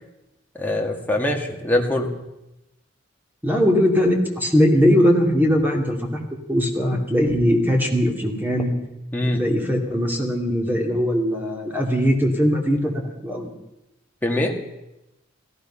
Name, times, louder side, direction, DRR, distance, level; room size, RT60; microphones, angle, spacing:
voice 1, 0.6-2.1 9.1-9.4 14.2-14.5, left 1 dB, 10° left, 0 dB, 1.9 m, -23 dB
voice 2, 3.4-6.1 6.5-8.7 9.2-13.5, equal, 10° right, 1 dB, 2.4 m, -20 dB
16.5 x 15.5 x 5.6 m, 0.92 s
head